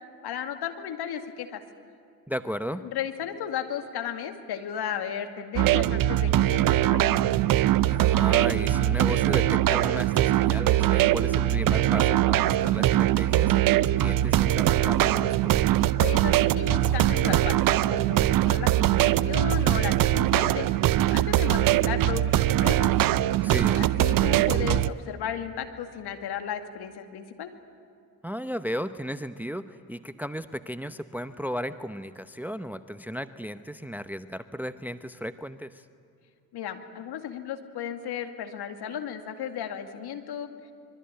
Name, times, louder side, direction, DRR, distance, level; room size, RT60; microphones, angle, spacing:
voice 1, 0.2-1.6 2.8-7.2 16.0-17.6 17.9-20.7 21.1-23.0 23.8-27.5 36.5-40.5, left 9 dB, 55° left, 6 dB, 2.3 m, -34 dB
voice 2, 2.3-2.9 7.9-15.5 23.4-23.8 28.2-35.8, equal, 5° right, 12 dB, 0.8 m, -35 dB
sound 1, 5.6-24.9, right 13 dB, 45° right, 0.7 m, -22 dB
25.0 x 22.5 x 9.0 m, 2.4 s
hypercardioid pair, 50°, 45 cm